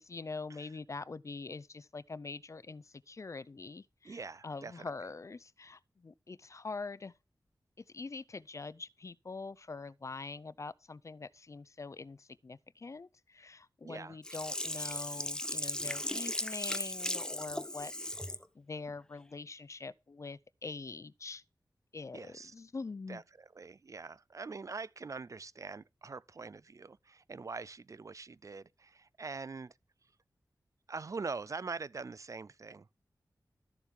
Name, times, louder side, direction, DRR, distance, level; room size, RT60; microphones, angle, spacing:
voice 1, 0.0-7.1 7.8-17.9 18.5-21.4 21.9-23.2, left 4 dB, 45° left, 0.5 m, -44 dB
voice 2, 4.0-4.9 13.8-14.2 22.1-22.5 23.1-29.7 30.9-32.9, right 4 dB, 45° right, 0.4 m, -43 dB
Sink (filling or washing), 14.2-18.4 18.9-19.0, left 1 dB, 10° left, 0.7 m, -37 dB
13.0 x 7.2 x 3.7 m
wide cardioid pair, 90°, 7 cm